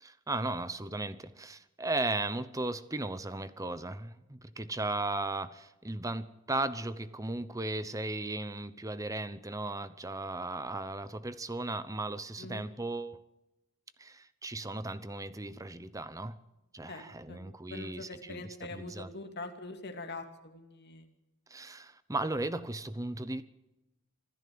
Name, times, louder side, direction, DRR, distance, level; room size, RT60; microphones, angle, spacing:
voice 1, 0.0-13.2 14.0-16.4 16.7-18.4 18.7-19.1 21.5-23.4, right 2 dB, 15° right, 14 dB, 0.8 m, -36 dB
voice 2, 16.9-17.4 17.7-21.1, left 2 dB, 50° left, 5 dB, 2.6 m, -43 dB
25.5 x 13.0 x 7.8 m, 1.0 s
head